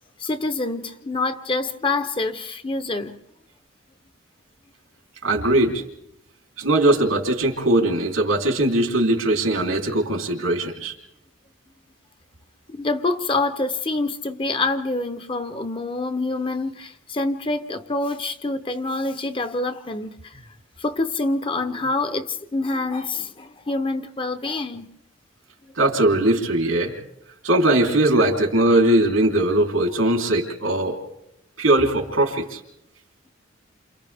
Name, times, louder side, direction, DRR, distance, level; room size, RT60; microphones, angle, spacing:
voice 1, 0.2-3.1 12.7-20.4 20.8-24.9, left 2 dB, 25° left, 0.7 m, -26 dB
voice 2, 5.2-5.8 6.6-10.9 25.7-26.9 27.4-31.0 31.6-32.6, right 1 dB, 90° right, 3.4 m, -20 dB
29.5 x 27.5 x 3.5 m
head